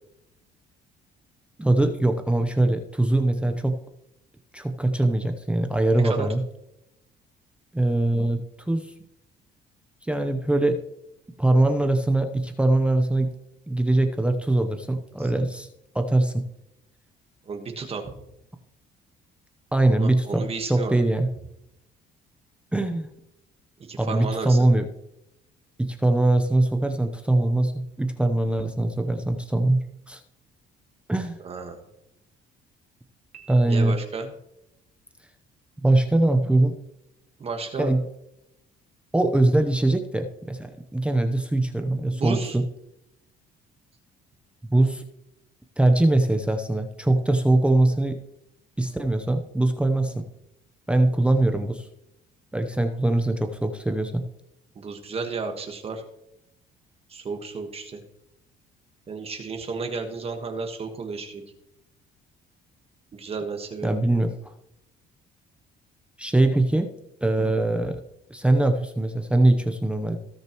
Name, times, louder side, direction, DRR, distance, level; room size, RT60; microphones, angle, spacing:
voice 1, 1.6-3.8 4.5-6.4 7.7-8.4 8.7-8.9 10.0-10.8 11.4-13.3 13.7-15.7 15.9-16.4 19.7-21.3 22.7-23.1 24.0-24.9 25.8-30.2 31.1-31.4 33.5-34.0 35.8-36.7 37.8-38.0 39.1-42.6 44.7-45.0 45.8-48.2 48.8-50.3 50.9-51.9 52.5-54.2 63.8-64.3 66.2-66.9 67.2-68.0 68.3-70.2, right 2 dB, 5° right, 5 dB, 0.8 m, -22 dB
voice 2, 17.5-18.1 19.9-20.9 23.9-24.6 31.4-31.7 33.7-34.3 37.4-37.9 42.1-42.6 54.7-56.0 57.1-58.0 59.1-61.4 63.1-63.9, right 4 dB, 35° right, 4 dB, 1.4 m, -32 dB
Piano, 33.3-34.4, right 10 dB, 60° right, 2.2 m, -52 dB
18.0 x 6.6 x 3.0 m, 0.84 s
cardioid pair, 110°, 17 cm